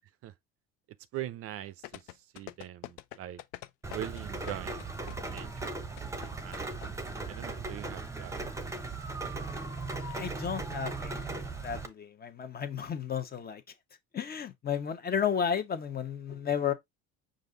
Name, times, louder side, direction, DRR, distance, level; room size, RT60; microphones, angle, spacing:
voice 1, 1.1-3.4 3.9-4.9 5.3-5.7 6.4-7.0 7.3-8.4, right 13 dB, 50° right, 0.5 m, -42 dB
sound 1, 1.8-6.9 7.1-7.2, left 16 dB, 75° left, 0.5 m, -45 dB
Rain, 3.8-11.9, right 3 dB, 10° right, 0.8 m, -38 dB
voice 2, 9.9-13.6 14.1-16.7, left 7 dB, 30° left, 0.9 m, -33 dB
5.2 x 2.6 x 3.7 m
supercardioid pair, 90°, 30 cm